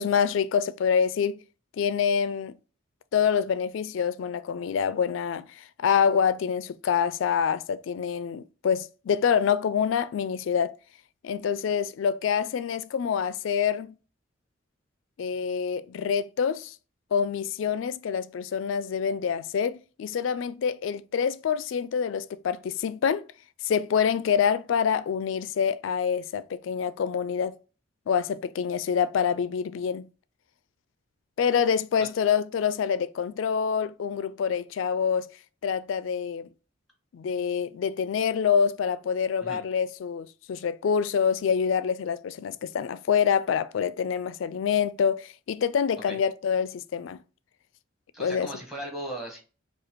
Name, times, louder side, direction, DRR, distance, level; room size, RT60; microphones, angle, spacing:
voice 1, 0.0-1.4 1.8-2.6 3.1-10.7 11.2-14.0 15.2-16.8 17.1-23.3 23.6-27.6 28.1-30.1 31.4-35.3 35.6-36.5 37.1-47.2 48.2-48.5, left 7 dB, 75° left, 0.3 m, -26 dB
voice 2, 48.1-49.4, right 1 dB, ahead, 1.2 m, -37 dB
4.9 x 2.3 x 4.4 m
head